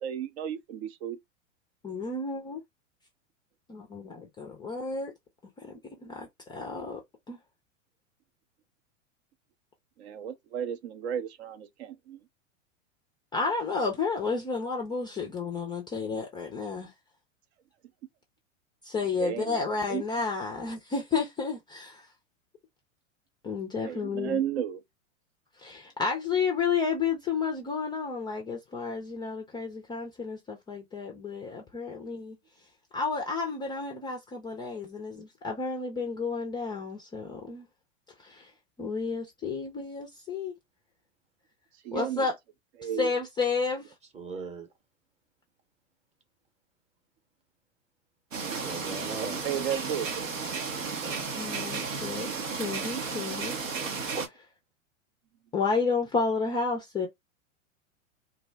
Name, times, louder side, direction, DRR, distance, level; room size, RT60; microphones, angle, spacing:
voice 1, 0.0-1.2 10.0-12.2 19.2-19.6 19.9-20.0 23.8-24.8 41.8-42.3 42.8-43.1 49.2-50.3, right 9 dB, 60° right, 0.5 m, -33 dB
voice 2, 1.8-2.6 3.7-5.1 5.6-7.0 7.3-7.4 13.3-16.9 18.8-22.1 23.4-24.4 25.6-32.4 32.9-37.7 38.2-38.5 38.8-40.5 41.9-42.4 42.8-43.9 51.3-53.6 54.3-54.5 55.5-57.1, left 4 dB, 10° left, 0.3 m, -31 dB
voice 3, 44.1-44.7 48.5-49.4 51.0-51.2, right 4 dB, 15° right, 0.7 m, -39 dB
sound 1, 48.3-54.3, right 5 dB, 85° right, 0.8 m, -33 dB
2.5 x 2.0 x 3.3 m
hypercardioid pair, 100°, 38 cm